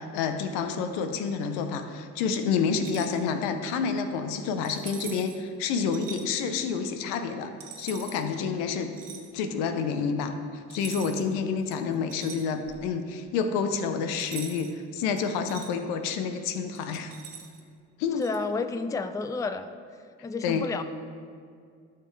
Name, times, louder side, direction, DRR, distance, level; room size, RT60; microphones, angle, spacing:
voice 1, 0.0-7.5 7.8-8.9 9.3-10.3 10.7-17.1 18.0-18.2 20.4-20.6, left 6 dB, 75° left, 8 dB, 0.8 m, -29 dB
sound 1, 2.7-3.2 4.6-5.4 5.9-6.2 7.6-8.2 8.9-9.3 10.7-11.3 11.7-12.9 14.2-14.7 15.2-15.7 16.7-17.6 18.2-18.4, right 7 dB, 55° right, 1.2 m, -43 dB
voice 2, 18.2-19.7 20.2-20.8, left 4 dB, 10° left, 10 dB, 0.4 m, -30 dB
12.0 x 5.8 x 3.2 m, 2.2 s
hypercardioid pair, 45°, 40 cm